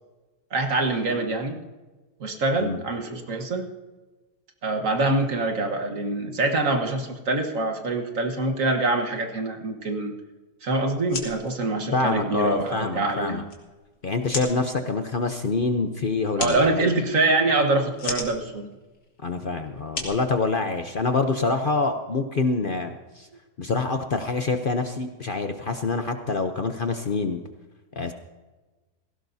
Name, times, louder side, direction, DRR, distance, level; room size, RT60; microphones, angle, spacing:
voice 1, 0.5-1.6 2.2-3.7 4.6-10.1 10.6-13.4 16.4-18.7, right 2 dB, 55° right, 4 dB, 1.7 m, -25 dB
sound 1, 10.9-21.1, left 3 dB, 85° left, 2.6 m, -38 dB
voice 2, 11.9-13.4 14.0-16.9 19.2-23.3 23.6-27.4 27.9-28.1, left 3 dB, 50° left, 6 dB, 0.6 m, -26 dB
18.0 x 16.0 x 2.7 m, 1.2 s
omnidirectional pair, 1.7 m